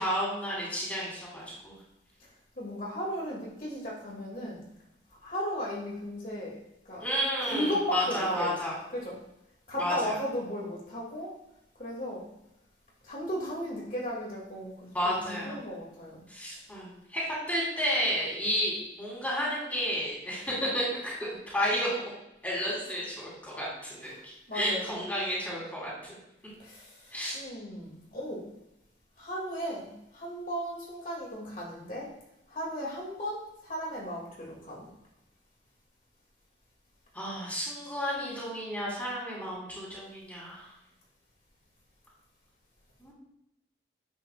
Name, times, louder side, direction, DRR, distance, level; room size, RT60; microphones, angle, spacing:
voice 1, 0.0-1.8 7.0-8.7 9.8-10.2 14.9-15.6 16.3-22.1 22.4-25.9 27.1-27.4 37.1-40.7 43.0-43.1, equal, 10° left, -6 dB, 3.2 m, -32 dB
voice 2, 2.6-4.6 5.2-6.6 6.9-7.1 7.4-8.6 8.9-9.2 9.7-11.4 11.8-12.3 13.0-16.2 24.0-24.2 24.5-24.9 26.6-28.4 29.2-32.1 32.5-34.9, equal, 45° left, -3 dB, 2.1 m, -36 dB
10.5 x 8.2 x 2.3 m, 0.86 s
head